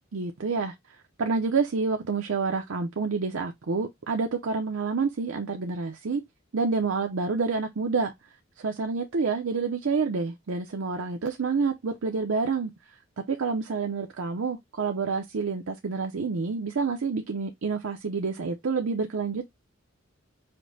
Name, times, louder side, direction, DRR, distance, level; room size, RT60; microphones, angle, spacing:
voice 1, 0.1-6.2 6.5-8.1 8.6-19.5, right 4 dB, 75° right, 0.6 m, -28 dB
5.2 x 2.1 x 3.9 m
head